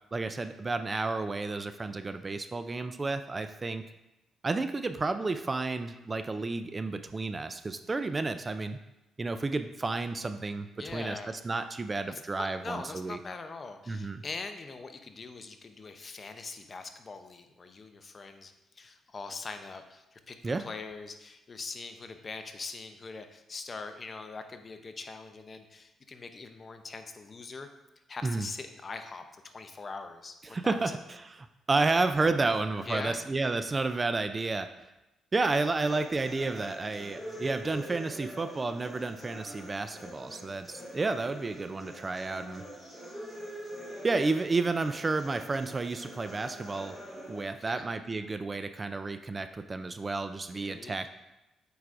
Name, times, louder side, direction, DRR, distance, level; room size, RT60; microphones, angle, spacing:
voice 1, 0.1-3.8 4.4-8.8 9.2-10.7 10.9-13.2 13.9-14.2 20.4-20.7 28.2-28.5 30.5-31.0 31.7-34.7 35.3-42.6 44.0-47.0 47.3-51.1, right 3 dB, 25° right, 10 dB, 0.3 m, -31 dB
voice 2, 10.7-11.4 12.1-27.7 28.1-30.9 32.9-33.3 37.2-37.5 47.6-47.9 50.5-51.1, left 4 dB, 35° left, 7 dB, 0.6 m, -42 dB
sound 1, 35.4-47.4, equal, 10° right, 2.1 m, -44 dB
8.0 x 4.7 x 2.5 m, 0.96 s
cardioid pair, 90°, 0 cm